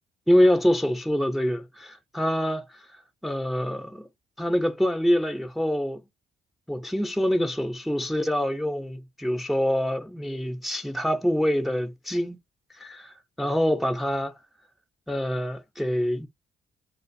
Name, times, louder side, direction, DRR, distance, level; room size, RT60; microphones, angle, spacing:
voice 1, 0.3-2.6 3.2-4.1 4.4-6.0 6.7-12.4 12.8-14.3 15.1-16.3, equal, ahead, 0.5 m, -25 dB
2.4 x 2.4 x 2.5 m
cardioid pair, 90°, 20 cm